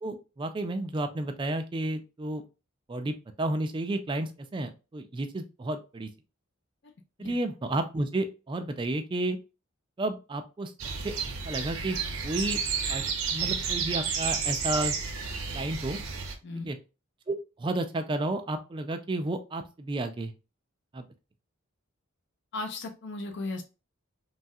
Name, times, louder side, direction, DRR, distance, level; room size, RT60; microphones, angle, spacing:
voice 1, 0.0-2.4 2.9-6.1 7.2-9.4 10.0-10.7 11.0-11.1 11.4-12.0 12.2-12.6 12.9-13.0 13.3-14.9 15.5-16.0 16.5-16.8 17.3-20.3 20.9-21.1, right 2 dB, 25° right, 7 dB, 0.3 m, -31 dB
sound 1, 10.8-16.3, right 5 dB, 90° right, 0.7 m, -31 dB
voice 2, 22.5-23.6, left 2 dB, 55° left, 6 dB, 0.5 m, -36 dB
3.1 x 2.3 x 2.6 m, 0.30 s
head